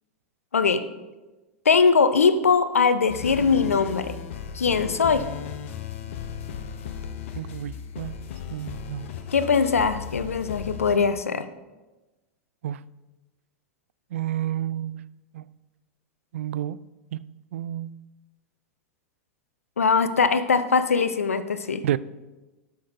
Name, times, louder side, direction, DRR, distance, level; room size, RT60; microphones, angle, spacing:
voice 1, 0.5-0.8 1.7-4.2 4.5-5.2 9.3-11.4 19.8-21.8, left 5 dB, 85° left, 0.6 m, -21 dB
sound 1, 3.1-11.0, left 8 dB, 65° left, 0.9 m, -36 dB
voice 2, 7.3-8.2 8.5-9.1 12.6-12.8 14.1-15.4 16.3-16.8 17.1-18.0 21.8-22.0, right 12 dB, 70° right, 0.3 m, -31 dB
12.0 x 6.2 x 4.2 m
figure-of-eight pair, 90°, 7 cm